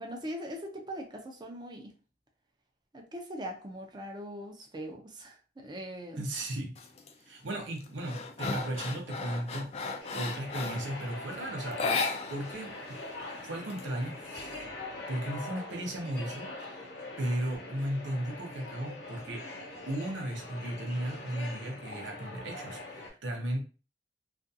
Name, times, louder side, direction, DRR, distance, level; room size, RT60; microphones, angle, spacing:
voice 1, 0.0-1.9 2.9-6.2, equal, 25° right, 0.5 m, -41 dB
voice 2, 6.2-6.7 7.2-12.0 12.3-13.0 13.4-14.7 15.1-16.5 17.2-19.4 19.9-23.6, right 1 dB, 80° right, 0.7 m, -36 dB
sound 1, 6.7-7.1 7.5-11.0 11.7-12.7 12.9-13.0 13.4-14.3, left 4 dB, 35° left, 0.3 m, -35 dB
sound 2, 10.0-23.1, left 2 dB, 60° left, 0.8 m, -43 dB
2.4 x 2.3 x 2.6 m
head